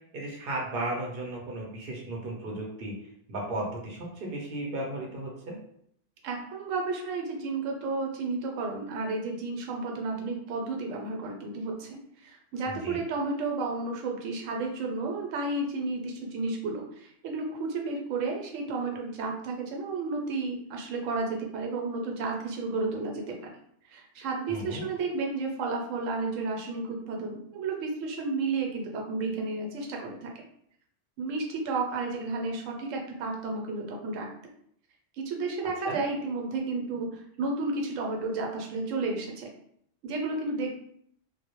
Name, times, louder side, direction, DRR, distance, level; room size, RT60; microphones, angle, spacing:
voice 1, 0.1-3.0 3.3-5.6 12.7-13.0 24.5-24.8 35.8-36.0, right 1 dB, 55° right, -1 dB, 0.6 m, -35 dB
voice 2, 6.2-23.5 23.9-30.3 31.2-34.3 35.2-39.5 40.0-40.7, right 3 dB, 85° right, 1 dB, 0.9 m, -32 dB
2.1 x 2.0 x 2.8 m, 0.68 s
omnidirectional pair, 1.3 m